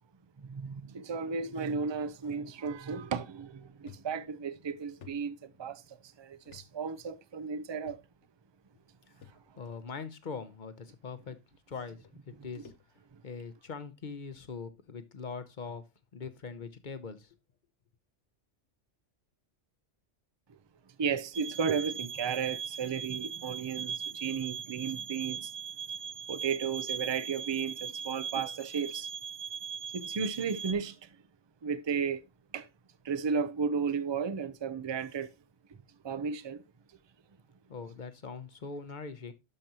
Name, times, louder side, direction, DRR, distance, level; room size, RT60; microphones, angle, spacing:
voice 1, 0.4-8.0 12.4-12.5 13.1-13.2 21.0-25.5 26.3-29.1 29.9-31.1 31.6-32.2 32.5-32.7 33.0-35.3 36.0-36.6, right 6 dB, 35° right, 0.5 m, -34 dB
sound 1, 2.6-2.8 3.3-3.4 3.9-5.9 6.4-6.7 7.0-7.1 7.8-8.3 9.2-9.7 10.6-10.7 11.7-11.8 12.0-13.2 13.7-13.9 14.7-14.8 15.3-15.4 15.7-15.8 16.2-16.4, left 7 dB, 75° left, 1.3 m, -56 dB
voice 2, 9.6-11.4 11.7-12.0 12.3-12.7 13.2-15.8 16.1-17.4 37.7-39.3, left 5 dB, 45° left, 0.9 m, -42 dB
sound 2, 21.3-30.7, right 7 dB, 70° right, 1.2 m, -39 dB
12.0 x 5.2 x 2.9 m
omnidirectional pair, 1.2 m